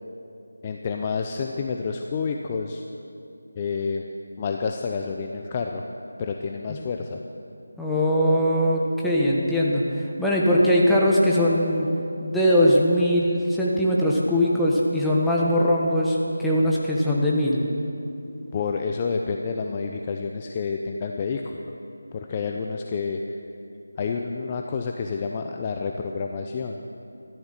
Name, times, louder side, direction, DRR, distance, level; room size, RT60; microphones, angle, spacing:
voice 1, 0.6-2.8 3.6-4.1 4.4-5.8 6.2-7.2 18.5-21.7 22.1-23.4 24.0-26.8, left 5 dB, 25° left, 3 dB, 0.6 m, -29 dB
voice 2, 7.8-11.9 12.2-17.6, equal, ahead, -6 dB, 1.3 m, -21 dB
13.5 x 12.5 x 6.7 m, 2.8 s
figure-of-eight pair, 165°, 0 cm